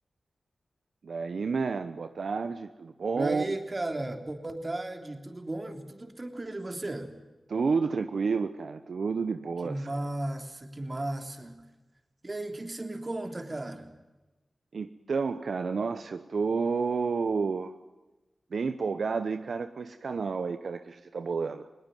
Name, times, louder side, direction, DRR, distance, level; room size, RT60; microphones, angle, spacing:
voice 1, 1.0-3.4 7.5-9.9 14.7-17.7 18.5-21.7, right 5 dB, 75° right, 10 dB, 0.9 m, -30 dB
voice 2, 3.1-7.2 9.6-11.6 12.2-13.9, right 2 dB, 35° right, 7 dB, 3.2 m, -35 dB
20.5 x 19.0 x 9.2 m, 1.1 s
cardioid pair, 55°, 0 cm